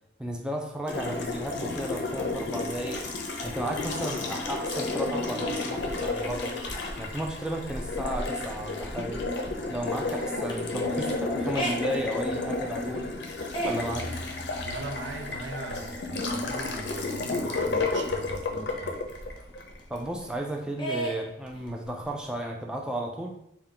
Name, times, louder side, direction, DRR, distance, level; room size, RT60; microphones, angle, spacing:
voice 1, 0.2-3.1 3.4-6.6 7.0-9.3 9.7-13.2 13.6-14.1 19.9-23.4, right 1 dB, 5° right, 1 dB, 0.3 m, -34 dB
Water tap faucet, 0.9-20.0, left 3 dB, 65° left, 0.5 m, -32 dB
sound 1, 5.7-17.2 17.5-17.6 17.9-20.4 20.8-22.3, right 1 dB, 25° left, 0.7 m, -39 dB
voice 2, 14.6-19.0, right 2 dB, 70° right, 4 dB, 0.5 m, -40 dB
3.4 x 2.2 x 3.6 m, 0.75 s
head